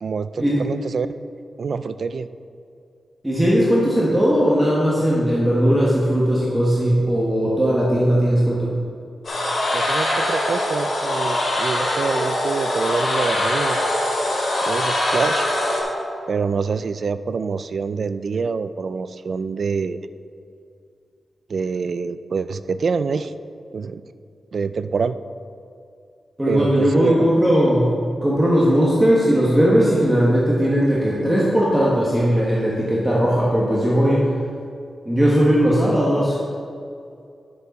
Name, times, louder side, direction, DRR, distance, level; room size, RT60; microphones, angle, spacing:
voice 1, 0.0-1.1 1.6-2.3 9.7-13.8 14.7-15.5 16.3-20.0 21.5-23.3 23.7-24.0 24.5-25.2 26.5-27.3, right 5 dB, 60° right, 13 dB, 0.3 m, -25 dB
voice 2, 3.2-8.7 26.4-34.3 35.0-36.4, equal, 10° right, -6 dB, 1.3 m, -18 dB
sound 1, 9.2-15.8, left 1 dB, 55° left, 2.4 m, -22 dB
11.0 x 6.7 x 4.1 m, 2.4 s
wide cardioid pair, 135°, 0 cm